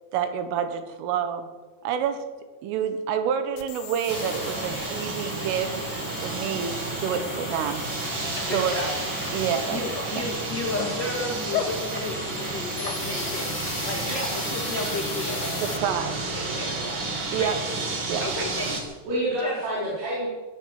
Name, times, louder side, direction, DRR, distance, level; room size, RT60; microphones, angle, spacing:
voice 1, 0.1-1.5 1.9-2.2 2.6-5.8 6.2-7.8 8.4-8.8 9.3-9.8 10.2-10.3 15.6-16.3 17.3-17.6 18.1-18.2, right 8 dB, 90° right, 8 dB, 4.0 m, -28 dB
sound 1, 3.6-15.8, left 11 dB, 80° left, 3.7 m, -39 dB
sound 2, 4.1-18.8, right 3 dB, 40° right, 1.9 m, -31 dB
sound 3, 8.3-16.6, left 8 dB, 65° left, 3.2 m, -39 dB
voice 2, 8.5-8.9 9.7-13.5 13.8-17.0 17.4-17.5 18.2-18.9 19.4-19.6, left 2 dB, 40° left, -2 dB, 1.6 m, -33 dB
voice 3, 14.0-14.6 19.1-20.3, right 1 dB, 70° right, -8 dB, 7.0 m, -29 dB
20.0 x 9.0 x 7.6 m, 1.3 s
omnidirectional pair, 5.6 m